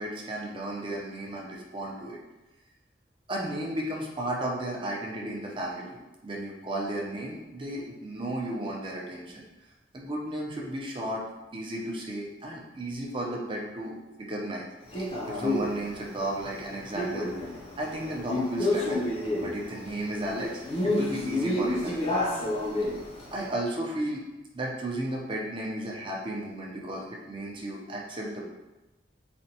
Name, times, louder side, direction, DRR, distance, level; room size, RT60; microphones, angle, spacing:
voice 1, 0.0-2.2 3.3-9.4 9.9-11.2 11.5-14.7 14.9-17.3 17.8-19.0 19.4-22.2 23.3-24.2 24.5-28.4, right 1 dB, 30° right, -2 dB, 0.6 m, -34 dB
Male speech man speaking, 14.9-23.5, left 1 dB, 35° left, 0.6 m, -30 dB
4.2 x 2.2 x 2.8 m, 1.0 s
head